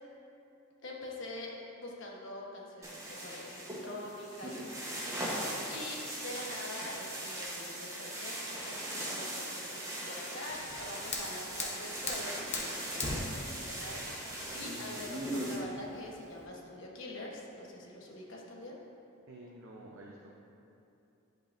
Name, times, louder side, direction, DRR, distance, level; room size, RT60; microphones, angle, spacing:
voice 1, 0.8-18.8, left 1 dB, 60° left, -3 dB, 1.1 m, -45 dB
sound 1, 2.8-15.6, right 1 dB, 15° right, 1.0 m, -39 dB
Fire, 10.5-16.5, left 3 dB, 30° left, 0.8 m, -41 dB
voice 2, 19.3-20.3, right 1 dB, 65° right, -3 dB, 0.6 m, -50 dB
10.5 x 5.2 x 2.6 m, 2.9 s
head